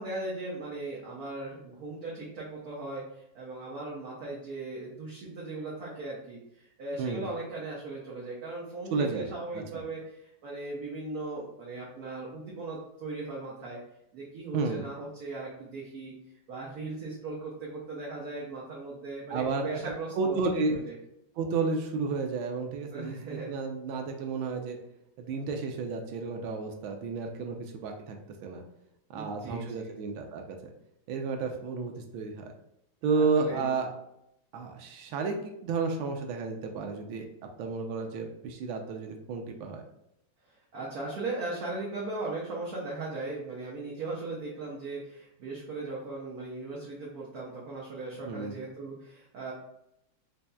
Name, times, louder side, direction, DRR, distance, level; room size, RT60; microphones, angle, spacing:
voice 1, 0.0-13.8 14.1-16.1 16.5-20.4 20.7-20.9 22.9-23.5 27.5-27.6 29.1-29.9 33.1-33.7 40.7-49.5, right 2 dB, 60° right, -5 dB, 1.1 m, -38 dB
voice 2, 8.9-9.3 9.5-9.8 14.5-14.9 19.3-20.8 21.4-24.8 25.2-28.2 28.4-28.6 29.1-30.7 31.1-32.5 33.0-33.9 34.5-37.3 37.6-39.8 48.2-48.6, right 4 dB, 85° right, 3 dB, 1.4 m, -32 dB
5.4 x 2.6 x 2.2 m, 0.79 s
omnidirectional pair, 2.2 m